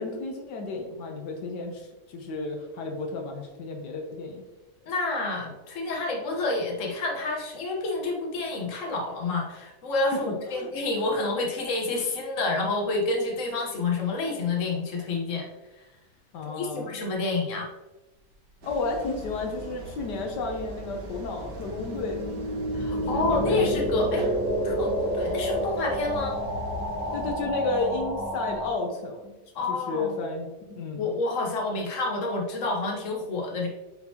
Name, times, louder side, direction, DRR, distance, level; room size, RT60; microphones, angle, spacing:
voice 1, 0.0-4.4 10.1-10.7 16.3-17.0 18.6-22.4 23.0-23.9 27.1-29.3 29.7-31.1, left 3 dB, 80° left, 2 dB, 1.4 m, -32 dB
voice 2, 4.8-15.5 16.6-17.7 22.7-24.3 24.6-26.4 29.5-30.2 31.0-33.7, left 3 dB, 50° left, 0 dB, 1.4 m, -28 dB
sound 1, 18.6-27.4, right 1 dB, 80° right, 1.8 m, -40 dB
sound 2, 19.7-28.7, equal, 10° right, 1.1 m, -30 dB
8.5 x 3.8 x 2.9 m, 1.0 s
omnidirectional pair, 1.8 m